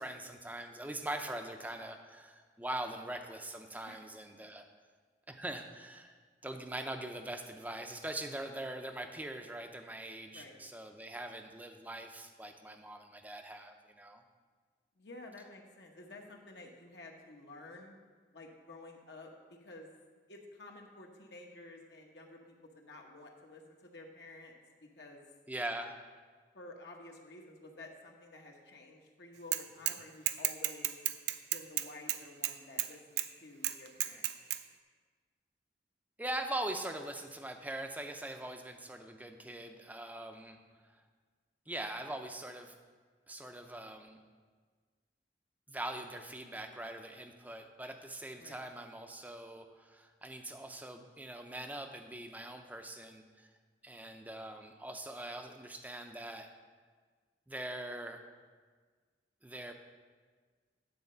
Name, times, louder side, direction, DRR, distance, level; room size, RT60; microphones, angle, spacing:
voice 1, 0.0-4.6 5.3-6.1 6.4-14.2 25.5-26.0 36.2-40.6 41.7-42.8 43.3-44.2 45.7-53.5 53.8-56.5 57.5-58.2 59.4-59.7, right 1 dB, 10° right, 5 dB, 0.5 m, -42 dB
voice 2, 15.0-18.0 18.3-19.9 20.3-24.5 24.8-25.2 26.5-31.0 31.5-34.3 48.4-48.6, left 2 dB, 65° left, 1 dB, 1.0 m, -52 dB
Bicycle / Mechanisms, 29.5-30.0 30.3-32.9 33.2-33.3 33.6-34.6, right 14 dB, 65° right, 0.4 m, -32 dB
9.6 x 4.2 x 6.6 m, 1.5 s
head